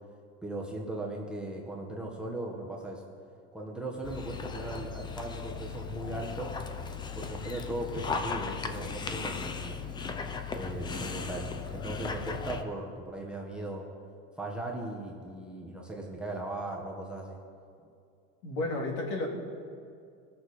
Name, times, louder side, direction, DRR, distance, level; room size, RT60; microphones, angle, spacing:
voice 1, 0.4-3.0 3.5-6.6 7.1-9.8 10.5-13.9 14.4-17.4, right 2 dB, 5° right, -1 dB, 1.1 m, -38 dB
Dog, 4.0-12.6, left 5 dB, 15° left, 0.4 m, -37 dB
voice 2, 18.4-19.3, left 2 dB, 80° left, -1 dB, 2.6 m, -32 dB
19.5 x 6.5 x 4.2 m, 2.4 s
cardioid pair, 155°, 34 cm